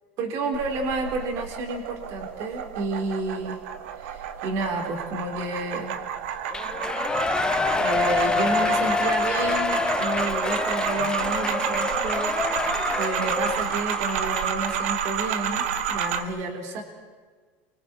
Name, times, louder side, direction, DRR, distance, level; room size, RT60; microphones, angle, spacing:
voice 1, 0.2-3.6 4.0-6.0 7.7-12.4 13.0-15.6 15.9-16.8, right 3 dB, 50° right, 3 dB, 3.8 m, -30 dB
sound 1, 0.5-16.2, right 8 dB, 90° right, 1.5 m, -30 dB
Shout / Cheering, 6.5-14.8 15.2-15.3, left 4 dB, 10° left, 0.6 m, -27 dB
29.0 x 24.0 x 4.5 m, 1.5 s
supercardioid pair, 145°, 7 cm